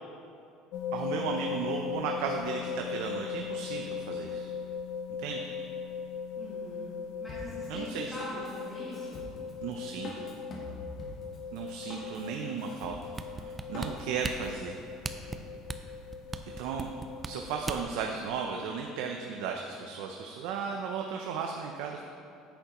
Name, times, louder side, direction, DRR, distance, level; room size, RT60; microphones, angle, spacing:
sound 1, 0.7-17.6, left 6 dB, 75° left, 0.5 m, -39 dB
voice 1, 0.9-4.5 5.2-5.4 7.7-8.1 9.6-10.1 11.5-12.9 13.4-14.8 16.6-16.9 17.2-22.0, right 6 dB, 75° right, 2 dB, 0.5 m, -35 dB
voice 2, 6.3-6.9 7.2-9.2, equal, 10° left, -11 dB, 1.8 m, -42 dB
Drum kit, 7.3-14.5, left 1 dB, 35° left, 1.2 m, -45 dB
sound 2, 13.2-18.0 18.5-18.6, right 3 dB, 15° right, 0.4 m, -37 dB
9.9 x 8.0 x 3.0 m, 2.6 s
cardioid pair, 160°, 0 cm